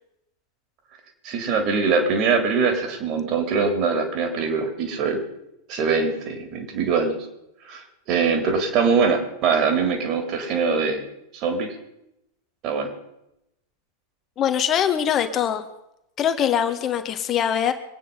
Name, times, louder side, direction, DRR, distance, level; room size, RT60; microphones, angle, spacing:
voice 1, 1.2-5.2 5.7-7.2 7.7-11.0 11.3-11.7 12.6-12.9, right 5 dB, 40° right, 5 dB, 3.5 m, -23 dB
voice 2, 14.4-15.7 16.2-17.7, left 9 dB, 30° left, 8 dB, 1.7 m, -22 dB
24.5 x 9.3 x 5.6 m, 0.85 s
figure-of-eight pair, 90°, 0 cm